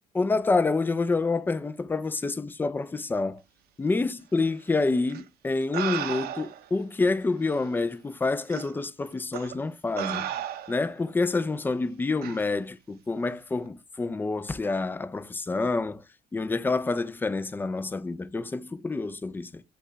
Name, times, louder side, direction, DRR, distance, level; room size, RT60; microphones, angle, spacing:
voice 1, 0.1-3.4 3.8-10.3 10.7-16.0 16.3-19.6, left 3 dB, 10° left, 0.3 m, -28 dB
sound 1, 5.1-5.2 5.7-6.7 7.6-7.7 8.5-8.7 9.3-9.5 10.0-10.9 12.2-12.4, right 11 dB, 65° right, 0.5 m, -34 dB
5.2 x 2.3 x 3.8 m
cardioid pair, 110°, 17 cm